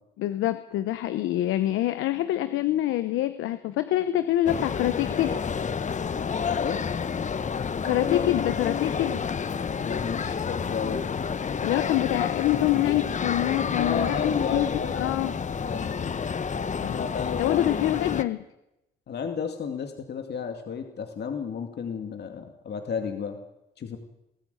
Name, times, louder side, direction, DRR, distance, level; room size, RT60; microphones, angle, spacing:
voice 1, 0.2-5.3 7.8-9.2 11.6-14.7 14.9-15.3 16.8-17.1 17.4-18.4, left 14 dB, 90° left, 12 dB, 0.9 m, -26 dB
sound 1, 4.5-18.2, left 6 dB, 40° left, 1.1 m, -29 dB
voice 2, 6.4-6.8 9.8-11.0 13.8-15.0 15.6-15.9 16.9-17.7 19.1-23.4 23.8-24.0, left 6 dB, 55° left, 5 dB, 2.3 m, -32 dB
21.0 x 13.5 x 9.2 m, 0.88 s
cardioid pair, 90°, 20 cm